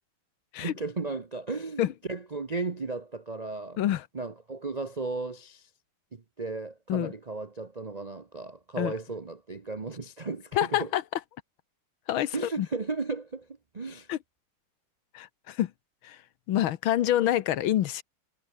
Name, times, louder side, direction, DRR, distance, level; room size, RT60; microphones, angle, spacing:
voice 1, 0.6-3.8 4.1-5.7 6.1-10.9 12.3-13.5 13.7-14.1, right 3 dB, 45° right, 0.5 m, -35 dB
voice 2, 10.5-11.0 12.1-12.7 14.1-14.2 15.1-15.7 16.0-16.2 16.5-18.0, left 12 dB, 75° left, 1.7 m, -27 dB
omnidirectional pair, 2.3 m